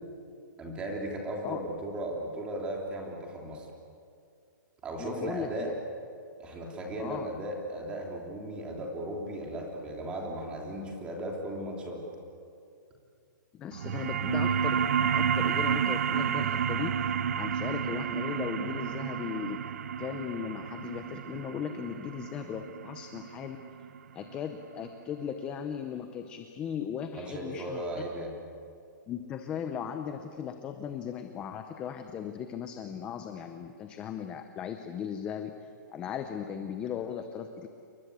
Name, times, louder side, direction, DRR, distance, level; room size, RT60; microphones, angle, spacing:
voice 1, 0.6-3.7 4.8-5.7 6.4-12.0 27.1-28.3, right 1 dB, 10° right, 0 dB, 3.2 m, -36 dB
voice 2, 5.0-5.8 7.0-7.3 13.5-14.8 15.1-19.6 20.0-23.6 24.1-27.9 29.1-35.5 35.9-37.7, left 8 dB, 10° left, 7 dB, 0.7 m, -37 dB
sound 1, 13.7-24.8, right 7 dB, 45° right, 0.9 m, -31 dB
29.0 x 23.0 x 8.2 m, 2.4 s
hypercardioid pair, 175°, 11 cm